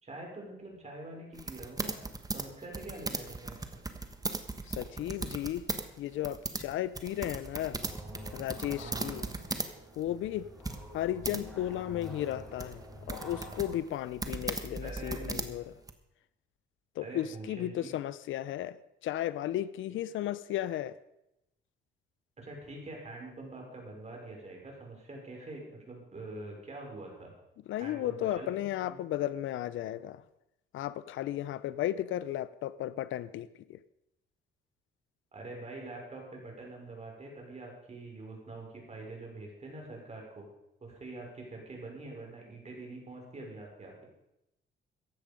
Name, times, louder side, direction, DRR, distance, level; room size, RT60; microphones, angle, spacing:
voice 1, 0.0-2.0 2.3-3.6 8.8-9.2 14.8-15.5 17.0-17.9 22.4-27.4 27.8-28.5 28.9-29.0 35.3-40.5 40.8-44.0, right 2 dB, 35° right, 0 dB, 5.5 m, -45 dB
sound 1, 1.3-5.8 6.1-9.7 10.0-10.1 10.6-11.4 12.0-15.9, right 3 dB, 20° right, 1.4 m, -37 dB
voice 2, 4.7-5.6 6.0-7.8 8.3-9.3 10.0-10.5 10.9-12.8 13.1-15.6 17.0-18.8 19.0-21.0 27.7-30.2 30.7-33.8, left 12 dB, 80° left, 16 dB, 0.6 m, -34 dB
sound 2, 7.8-13.8, equal, 5° left, 4.8 m, -47 dB
15.0 x 10.5 x 5.2 m, 0.86 s
cardioid pair, 90°, 20 cm